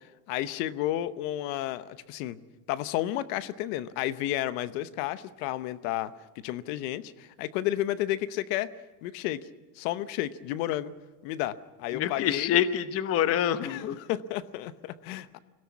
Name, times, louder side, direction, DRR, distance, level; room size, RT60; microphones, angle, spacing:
voice 1, 0.3-2.4 2.7-8.7 9.0-9.5 9.7-10.9 11.2-12.6 13.6-15.4, left 14 dB, 60° left, 14 dB, 1.0 m, -32 dB
voice 2, 11.9-14.0, left 10 dB, 30° left, 12 dB, 0.8 m, -26 dB
23.0 x 17.0 x 8.4 m, 1.2 s
supercardioid pair, 145°, 50 cm